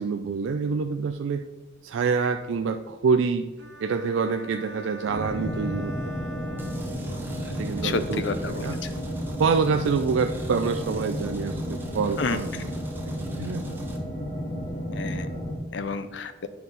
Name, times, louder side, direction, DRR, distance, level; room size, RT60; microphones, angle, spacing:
voice 1, 0.0-1.4 1.8-3.5 3.8-6.0 7.6-8.8 9.4-12.7 13.4-13.7, right 5 dB, 90° right, 7 dB, 0.4 m, -26 dB
sound 1, 3.6-7.5, left 1 dB, 70° right, 1.0 m, -44 dB
sound 2, 5.1-15.5, equal, 55° left, 1.7 m, -32 dB
sound 3, 6.6-14.0, right 1 dB, 10° right, 0.8 m, -43 dB
voice 2, 7.8-8.8 12.2-12.4 14.9-15.3 15.7-16.5, left 4 dB, 75° left, 12 dB, 0.6 m, -30 dB
9.3 x 5.8 x 4.0 m, 1.2 s
head